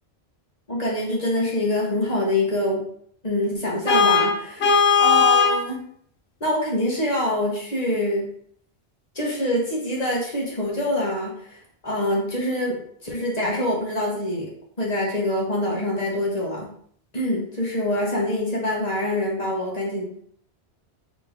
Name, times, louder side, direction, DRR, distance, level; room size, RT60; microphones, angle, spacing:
voice 1, 0.7-2.8 3.2-5.8 6.4-8.3 9.1-14.5 14.8-16.7 17.1-20.3, left 1 dB, 40° left, -3 dB, 1.3 m, -25 dB
Vehicle horn car horn honking, 3.9-5.6, left 5 dB, 80° left, 1.0 m, -17 dB
4.2 x 3.2 x 3.5 m, 0.62 s
omnidirectional pair, 1.1 m